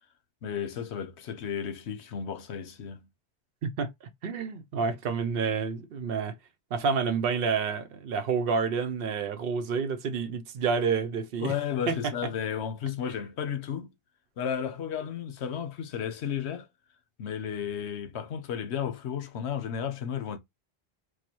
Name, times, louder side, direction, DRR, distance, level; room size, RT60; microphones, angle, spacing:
voice 1, 0.4-3.1 11.4-13.9 14.4-16.7 17.2-20.4, left 8 dB, 80° left, 1.0 m, -33 dB
voice 2, 3.6-6.4 6.7-11.5 11.9-12.3, right 5 dB, 65° right, 0.8 m, -29 dB
4.7 x 2.2 x 2.9 m
omnidirectional pair, 1.1 m